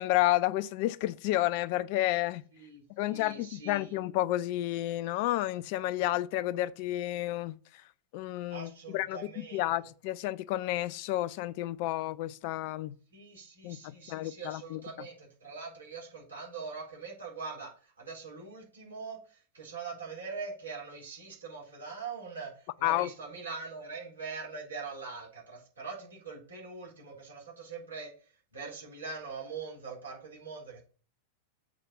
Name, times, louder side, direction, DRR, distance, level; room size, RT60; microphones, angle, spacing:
voice 1, 0.0-2.4 3.0-7.6 8.1-12.9 13.6-14.8 22.8-23.1, left 15 dB, 45° left, 0.4 m, -31 dB
voice 2, 2.5-3.9 8.5-9.7 13.1-28.1 28.5-30.8, right 4 dB, 70° right, 4.1 m, -43 dB
7.3 x 4.9 x 6.0 m
figure-of-eight pair, 90°, 0 cm